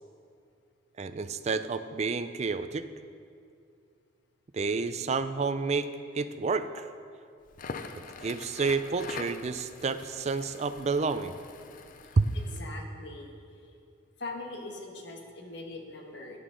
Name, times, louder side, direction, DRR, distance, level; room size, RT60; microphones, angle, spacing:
voice 1, 1.0-2.9 4.5-5.9 6.1-6.9 8.2-11.4 12.2-12.3, right 4 dB, 30° right, 11 dB, 0.3 m, -29 dB
Crackle, 7.5-12.7, left 5 dB, 40° left, 0.4 m, -44 dB
voice 2, 12.3-13.4 14.2-16.4, left 2 dB, 55° left, 2 dB, 1.2 m, -41 dB
10.5 x 9.9 x 3.8 m, 2.4 s
head